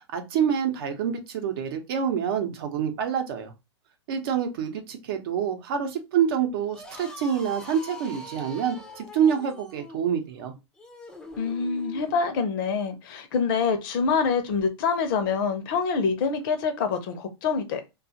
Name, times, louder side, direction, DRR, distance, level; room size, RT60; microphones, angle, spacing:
voice 1, 0.1-3.5 4.1-10.5, right 8 dB, 55° right, 0.7 m, -27 dB
sound 1, 6.6-12.3, left 2 dB, 5° left, 0.3 m, -43 dB
voice 2, 11.4-17.8, left 5 dB, 50° left, 0.6 m, -26 dB
2.4 x 2.3 x 2.7 m
hypercardioid pair, 140°, 14 cm